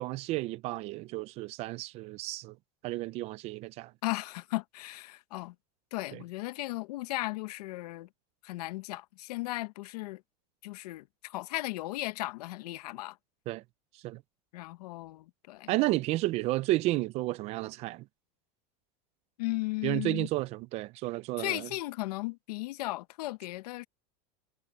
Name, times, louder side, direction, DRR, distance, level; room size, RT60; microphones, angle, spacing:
voice 1, 0.0-2.6 2.8-3.9 6.1-6.2 13.5-13.6 14.0-14.2 15.7-18.0 19.8-21.7, right 18 dB, 30° right, 0.4 m, -32 dB
voice 2, 4.0-5.5 5.9-8.1 8.4-10.2 10.6-13.2 14.5-15.7 19.4-20.3 21.4-23.9, left 20 dB, 75° left, 0.9 m, -36 dB
supercardioid pair, 165°, 20 cm